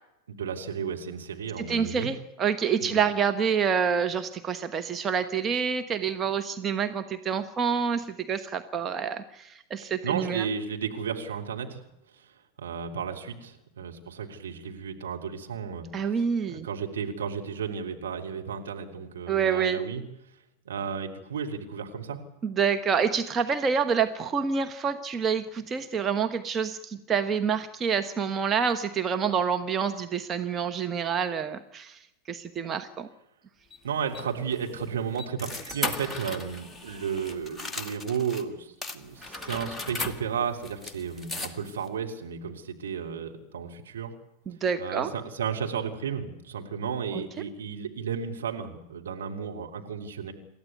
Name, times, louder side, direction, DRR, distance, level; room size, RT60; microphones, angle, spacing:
voice 1, 0.3-2.1 2.8-3.0 10.0-11.8 12.1-15.9 16.5-20.0 20.6-22.2 33.8-44.1 44.8-50.3, right 7 dB, 65° right, 2 dB, 3.3 m, -33 dB
voice 2, 1.6-10.4 15.9-16.7 19.3-19.8 22.4-33.1 44.5-45.1 47.1-47.2, right 6 dB, 25° right, 7 dB, 1.3 m, -27 dB
sound 1, 33.7-38.4 38.8-41.9, left 2 dB, 5° left, 2.3 m, -37 dB
28.0 x 13.5 x 9.6 m, 0.89 s
figure-of-eight pair, 90°, 0 cm